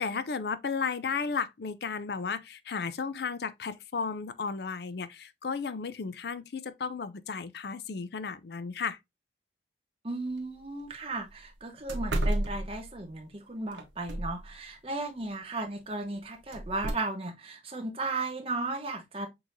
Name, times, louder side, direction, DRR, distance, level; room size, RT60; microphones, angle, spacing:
voice 1, 0.0-9.0, left 5 dB, 60° left, 0.4 m, -34 dB
voice 2, 10.0-19.3, right 2 dB, 30° right, 1.0 m, -35 dB
sound 1, 10.3-10.4 10.8-10.9 11.3-11.4 11.9-13.1 13.7-14.5 16.5-16.9, right 1 dB, 80° right, 1.1 m, -31 dB
6.1 x 3.2 x 2.6 m
head